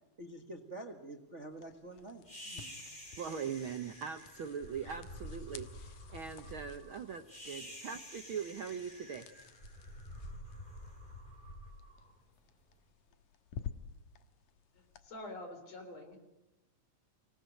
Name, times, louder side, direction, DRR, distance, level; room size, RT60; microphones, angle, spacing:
voice 1, 0.2-2.9, right 2 dB, 35° right, 4 dB, 1.3 m, -48 dB
sound 1, 1.5-15.1, left 8 dB, 85° left, 2.7 m, -53 dB
sound 2, 2.3-12.6, equal, 15° left, 5.1 m, -49 dB
voice 2, 3.2-9.3, right 7 dB, 65° right, 7 dB, 1.4 m, -41 dB
voice 3, 14.7-16.2, left 1 dB, 60° left, 6 dB, 4.9 m, -47 dB
26.0 x 18.5 x 9.2 m, 0.92 s
omnidirectional pair, 3.4 m